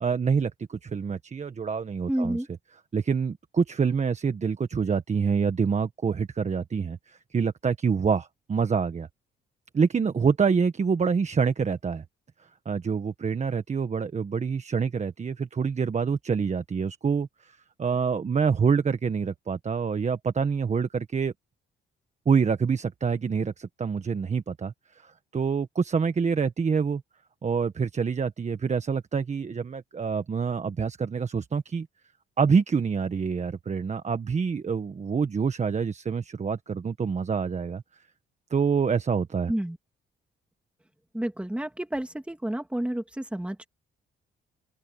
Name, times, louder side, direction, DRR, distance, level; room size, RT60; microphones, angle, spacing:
voice 1, 0.0-2.4 2.9-9.1 9.7-12.0 12.6-21.3 22.2-27.0 27.4-31.9 32.4-37.8 38.5-39.5, right 6 dB, 35° right, 1.4 m, -26 dB
voice 2, 2.1-2.5 39.5-39.8 41.1-43.7, right 1 dB, 5° right, 2.8 m, -30 dB
open air
cardioid pair, 90°, 20 cm